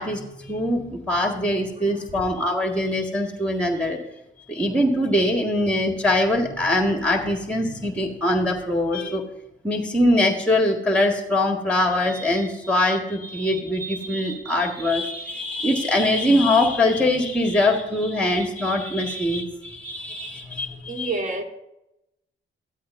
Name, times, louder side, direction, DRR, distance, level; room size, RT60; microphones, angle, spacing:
voice 1, 0.0-4.0 4.5-9.2 9.6-21.1, left 1 dB, 5° left, 1.8 m, -22 dB
voice 2, 20.9-21.4, right 3 dB, 40° right, 1.8 m, -28 dB
14.0 x 12.0 x 2.7 m
supercardioid pair, 60°, 20 cm